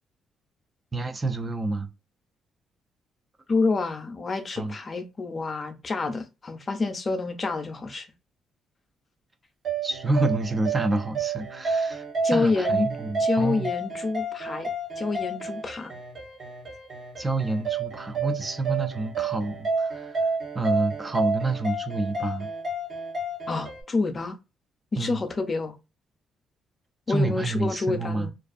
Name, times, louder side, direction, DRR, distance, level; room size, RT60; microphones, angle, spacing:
voice 1, 0.9-1.9 4.6-4.7 9.8-13.7 17.2-20.3 20.5-22.5 25.0-25.2 27.1-28.3, right 2 dB, 25° right, 0.3 m, -28 dB
voice 2, 3.5-8.1 12.2-12.9 13.2-14.7 15.0-15.9 23.5-24.4 24.9-25.8 27.1-28.3, left 3 dB, 35° left, 0.5 m, -28 dB
sound 1, 9.6-23.8, right 3 dB, 50° right, 0.8 m, -30 dB
2.4 x 2.3 x 2.4 m
cardioid pair, 90°, 0 cm